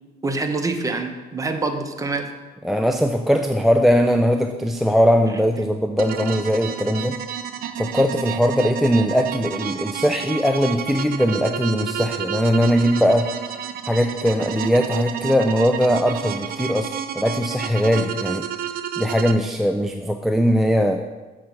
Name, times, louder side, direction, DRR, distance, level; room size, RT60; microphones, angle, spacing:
voice 1, 0.2-2.3, right 3 dB, 20° right, 5 dB, 0.7 m, -25 dB
voice 2, 2.6-7.2 7.8-13.3 13.9-18.5 19.0-21.0, equal, ahead, 5 dB, 0.3 m, -20 dB
sound 1, 6.0-19.3, right 9 dB, 60° right, 0.5 m, -30 dB
6.7 x 3.9 x 5.8 m, 1.2 s
cardioid pair, 110°, 17 cm